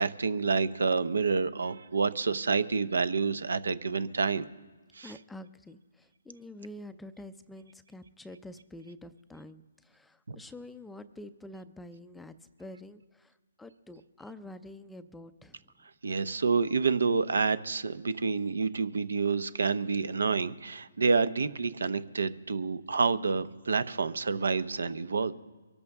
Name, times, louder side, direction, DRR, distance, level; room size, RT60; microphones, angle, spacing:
voice 1, 0.0-4.5 4.9-5.1 10.3-10.4 16.0-25.3, right 4 dB, 80° right, 15 dB, 0.8 m, -28 dB
voice 2, 5.0-12.3 12.6-15.6, left 1 dB, 5° left, 10 dB, 0.4 m, -47 dB
23.5 x 13.5 x 3.6 m, 1.3 s
hypercardioid pair, 155°, 0 cm